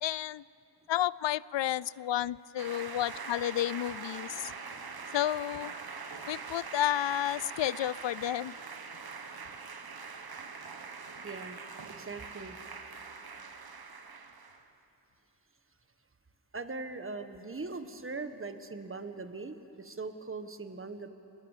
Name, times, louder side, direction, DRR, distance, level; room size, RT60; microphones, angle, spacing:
voice 1, 0.0-0.4 0.9-4.5 5.1-5.7 6.3-8.6, left 12 dB, 80° left, 21 dB, 0.5 m, -31 dB
sound 1, 2.6-14.7, right 5 dB, 55° right, 1.4 m, -43 dB
voice 2, 11.2-11.6 12.0-12.6 16.5-21.1, right 3 dB, 30° right, 8 dB, 1.6 m, -40 dB
30.0 x 22.5 x 7.5 m, 3.0 s
wide cardioid pair, 70°, 43 cm